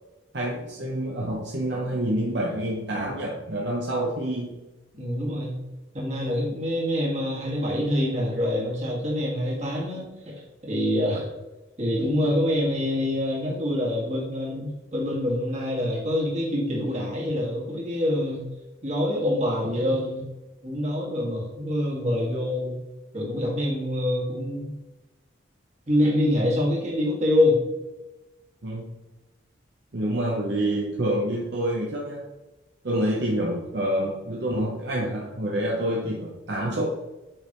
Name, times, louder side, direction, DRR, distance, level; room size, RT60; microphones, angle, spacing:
voice 1, 0.3-4.6 28.6-28.9 29.9-32.2 32.8-36.9, right 1 dB, 60° right, -2 dB, 0.9 m, -27 dB
voice 2, 5.0-5.6 5.9-11.3 11.8-18.5 18.8-20.3 20.6-22.8 23.1-24.7 25.9-27.6, left 1 dB, 35° right, -4 dB, 2.0 m, -25 dB
7.2 x 5.3 x 3.1 m, 1.1 s
head